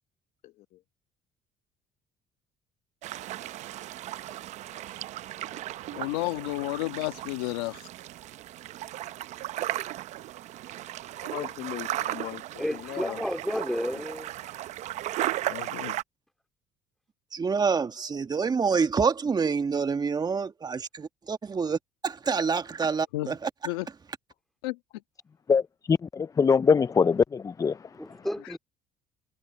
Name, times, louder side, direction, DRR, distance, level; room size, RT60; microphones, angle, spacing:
voice 1, 0.4-0.8 11.1-13.2, left 14 dB, 65° left, 1.2 m, -39 dB
sound 1, 3.0-16.0, right 14 dB, 65° right, 0.8 m, -36 dB
voice 2, 5.9-7.9 15.5-16.0 23.1-23.4 23.6-23.9 24.6-24.8, left 20 dB, 90° left, 1.5 m, -32 dB
voice 3, 12.6-14.3 27.9-28.6, equal, ahead, 2.5 m, -31 dB
voice 4, 17.3-21.8 22.0-23.5, right 5 dB, 30° right, 1.5 m, -27 dB
voice 5, 25.9-27.8, left 5 dB, 25° left, 0.5 m, -22 dB
supercardioid pair, 70°, 13 cm